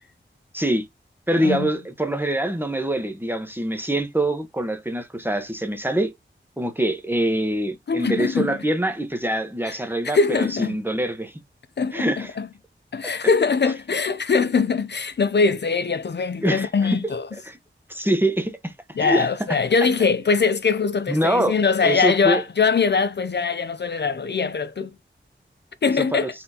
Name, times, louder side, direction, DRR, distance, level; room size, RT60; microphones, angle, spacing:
voice 1, 0.5-0.8 1.3-6.1 6.6-11.3 11.9-12.4 13.0-13.1 16.4-17.0 17.4-17.6 17.9-18.7 19.0-19.3 21.1-21.6 21.8-22.4 25.9-26.3, right 1 dB, 10° right, 1.1 m, -24 dB
voice 2, 7.9-8.6 9.6-9.8 10.0-10.8 11.8-12.5 12.9-17.3 19.0-24.9 25.8-26.3, left 5 dB, 60° left, 0.5 m, -22 dB
4.3 x 3.9 x 2.8 m
wide cardioid pair, 70°, 20 cm